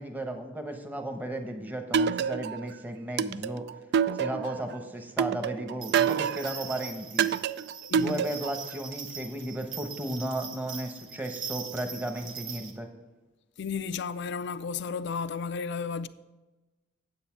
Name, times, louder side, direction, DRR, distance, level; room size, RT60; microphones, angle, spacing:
voice 1, 0.0-3.7 4.2-7.3 7.9-12.9, right 1 dB, 10° right, 1.0 m, -35 dB
sound 1, 1.9-2.7 3.2-4.6 5.2-6.6 7.2-8.6, right 7 dB, 60° right, 0.3 m, -27 dB
sound 2, 5.8-12.7, right 6 dB, 85° right, 1.3 m, -41 dB
voice 2, 7.9-8.2 13.6-16.1, left 5 dB, 65° left, 0.4 m, -33 dB
9.5 x 7.8 x 4.5 m
head